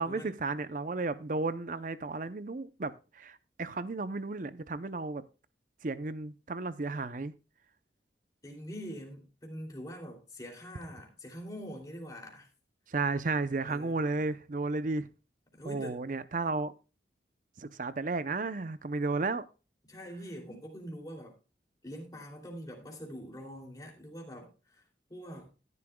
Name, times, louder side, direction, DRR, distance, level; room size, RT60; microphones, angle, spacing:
voice 1, 0.0-5.2 5.8-7.3 12.9-15.1 15.6-16.7 17.6-19.4, right 3 dB, 45° right, 0.6 m, -33 dB
voice 2, 8.4-12.5 13.6-14.2 15.5-15.9 19.9-21.3 21.8-24.5 25.1-25.5, equal, 20° left, 2.8 m, -44 dB
14.5 x 11.0 x 2.3 m
head